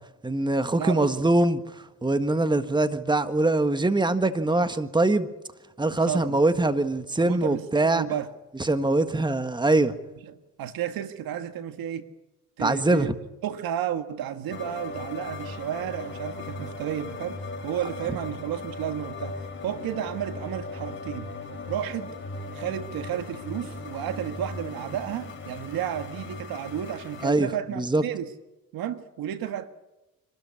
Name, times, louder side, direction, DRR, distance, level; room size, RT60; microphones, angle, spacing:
voice 1, 0.2-1.6 2.0-5.3 5.8-8.0 8.6-9.9 12.6-13.1 27.2-27.5 27.8-28.0, right 2 dB, 15° right, 1.6 m, -23 dB
voice 2, 0.8-1.1 6.1-6.4 7.2-8.3 10.2-12.1 12.6-13.1 13.4-21.3 21.7-22.1 22.5-28.3 28.7-29.7, right 10 dB, 80° right, 1.6 m, -32 dB
sound 1, 14.5-27.3, left 3 dB, 35° left, 4.2 m, -38 dB
26.0 x 13.0 x 9.7 m
cardioid pair, 75°, 35 cm